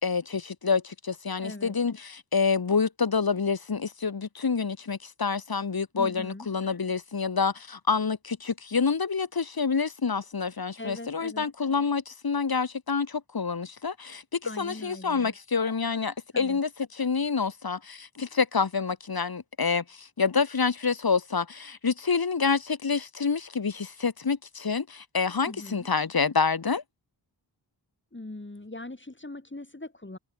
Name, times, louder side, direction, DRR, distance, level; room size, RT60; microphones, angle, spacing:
voice 1, 0.0-16.7 17.0-26.8, left 5 dB, 55° left, 2.0 m, -27 dB
voice 2, 1.4-1.8 6.0-6.5 10.8-11.5 14.4-15.4 16.3-16.6 25.4-25.9 28.1-30.2, left 2 dB, 25° left, 5.0 m, -41 dB
cardioid pair, 45°, 44 cm